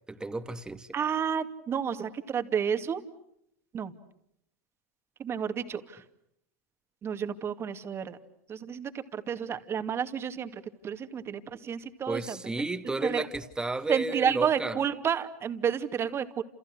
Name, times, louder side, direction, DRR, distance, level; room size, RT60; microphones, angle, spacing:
voice 1, 0.1-0.9 12.1-14.8, right 2 dB, 10° right, 2.3 m, -32 dB
voice 2, 0.9-3.0 3.7-3.9 5.2-6.0 7.0-8.2 8.5-12.4 13.0-13.2 13.9-16.4, right 8 dB, 30° right, 2.5 m, -31 dB
30.0 x 29.0 x 6.4 m
hypercardioid pair, 110°, 8 cm